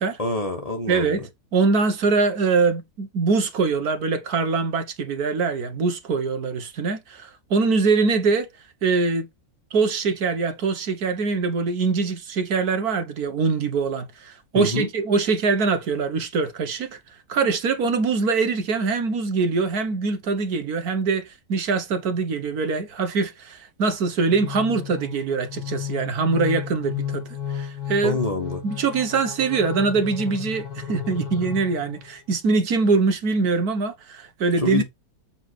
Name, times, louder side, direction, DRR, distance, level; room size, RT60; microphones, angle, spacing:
voice 1, 0.2-1.2 14.5-14.9 28.0-28.6 34.6-34.8, left 2 dB, 25° left, 1.4 m, -26 dB
voice 2, 0.9-8.5 8.8-9.3 9.7-17.0 17.3-27.3 27.5-28.2 28.6-34.8, right 4 dB, 75° right, 1.7 m, -23 dB
sound 1, 24.2-32.2, left 9 dB, 75° left, 2.4 m, -33 dB
7.3 x 4.0 x 4.7 m
omnidirectional pair, 1.6 m